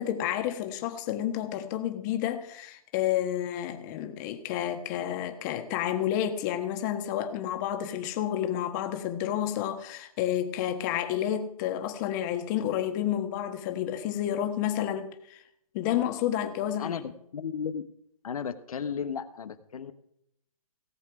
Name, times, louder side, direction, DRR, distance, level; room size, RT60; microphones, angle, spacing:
voice 1, 0.0-15.4 15.7-16.9, left 11 dB, 30° left, 1.5 m, -30 dB
voice 2, 16.8-17.8 18.2-19.9, left 7 dB, 75° left, 1.1 m, -34 dB
17.5 x 7.3 x 4.8 m
hypercardioid pair, 150°, 19 cm